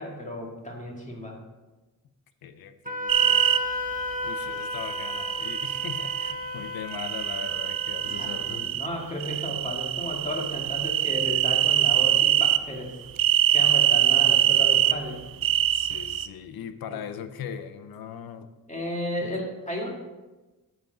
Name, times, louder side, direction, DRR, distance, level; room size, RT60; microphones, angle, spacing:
voice 1, 0.0-1.4 8.0-13.0 13.5-15.2 16.9-17.0 18.7-19.9, equal, 20° left, -1 dB, 1.9 m, -34 dB
voice 2, 2.4-3.6 4.2-8.6 10.6-10.7 15.7-18.5 19.2-19.3, left 8 dB, 80° left, 10 dB, 0.7 m, -39 dB
Wind instrument woodwind instrument, 2.9-8.6, left 2 dB, 25° right, 1.0 m, -34 dB
sound 1, 3.1-3.6 4.7-6.3 6.9-8.9 9.2-12.6 13.2-14.9 15.4-16.3, right 12 dB, 70° right, 0.5 m, -23 dB
8.9 x 8.0 x 3.9 m, 1.2 s
wide cardioid pair, 115°, 36 cm